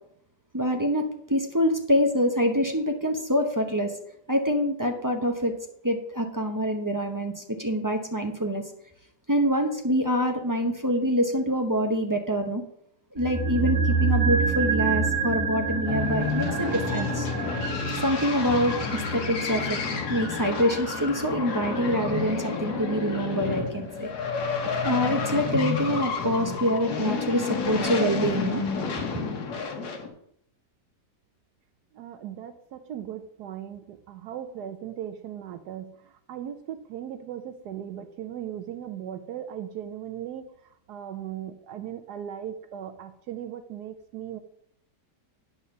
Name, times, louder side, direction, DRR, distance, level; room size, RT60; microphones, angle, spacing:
voice 1, 0.5-3.9 4.3-5.5 5.8-8.6 9.3-12.6 13.1-17.3 18.0-19.8 20.1-24.1 24.8-28.6, equal, 20° right, 3 dB, 0.5 m, -25 dB
sound 1, 13.2-23.4 23.7-23.8, right 4 dB, 55° right, 1.7 m, -29 dB
sound 2, 15.9-30.1, left 5 dB, 70° left, 1.8 m, -30 dB
voice 2, 31.9-44.4, right 10 dB, 75° right, 9 dB, 1.2 m, -38 dB
9.4 x 4.3 x 6.8 m, 0.70 s
omnidirectional pair, 1.8 m